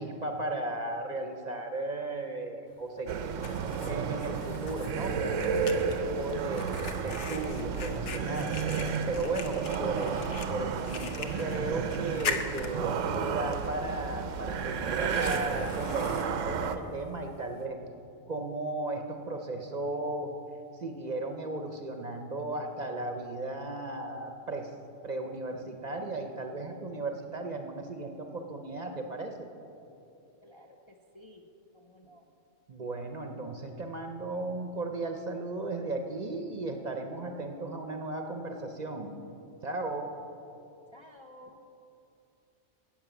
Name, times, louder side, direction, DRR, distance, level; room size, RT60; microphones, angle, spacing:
voice 1, 0.0-3.3 3.9-6.7 7.0-8.6 9.1-17.8 18.3-20.3 20.8-24.7 25.0-29.5 32.7-39.1 39.6-40.1, right 2 dB, 40° right, 5 dB, 0.7 m, -35 dB
Fire, 2.7-17.7, left 5 dB, 70° left, 1.1 m, -43 dB
sound 1, 3.1-16.8, right 6 dB, 90° right, 1.0 m, -32 dB
voice 2, 30.4-31.5 31.7-32.3 40.9-41.6, left 1 dB, 35° left, 1 dB, 0.5 m, -53 dB
11.0 x 8.4 x 6.9 m, 2.8 s
omnidirectional pair, 1.3 m